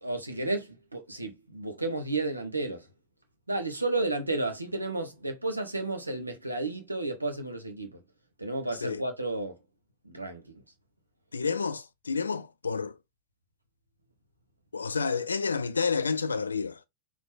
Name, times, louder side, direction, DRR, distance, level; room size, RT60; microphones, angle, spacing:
voice 1, 0.0-2.9 3.5-8.0 8.4-9.5 10.0-10.6, right 2 dB, 85° right, 1.0 m, -32 dB
voice 2, 11.3-13.0 14.7-16.8, left 5 dB, 75° left, 0.4 m, -30 dB
4.1 x 3.1 x 3.8 m
figure-of-eight pair, 90°, 0 cm